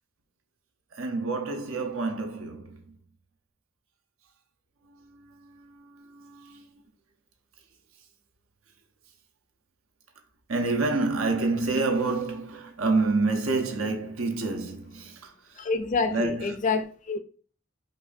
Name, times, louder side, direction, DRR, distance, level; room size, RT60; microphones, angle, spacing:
voice 1, 0.9-3.0 4.8-6.8 10.5-15.7 16.1-16.6, right 3 dB, 90° right, 0.8 m, -28 dB
voice 2, 15.6-17.2, left 4 dB, 40° left, 0.4 m, -27 dB
5.2 x 2.5 x 2.5 m
head